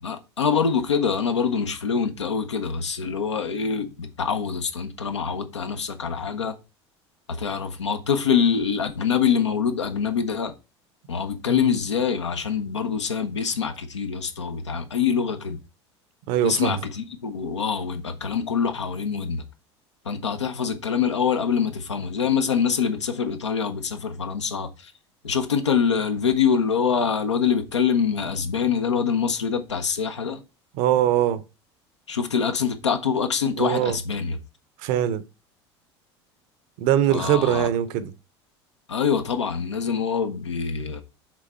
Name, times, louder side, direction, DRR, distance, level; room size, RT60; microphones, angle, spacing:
voice 1, 0.0-6.6 7.3-10.5 11.1-15.6 16.4-19.4 20.0-24.9 25.2-30.4 32.1-34.4 37.1-37.7 38.9-41.0, left 6 dB, 85° left, 0.7 m, -25 dB
voice 2, 16.3-16.7 30.8-31.4 33.6-34.0 34.8-35.2 36.8-38.1, right 11 dB, 60° right, 0.7 m, -22 dB
6.1 x 3.7 x 4.3 m
figure-of-eight pair, 70°, 15 cm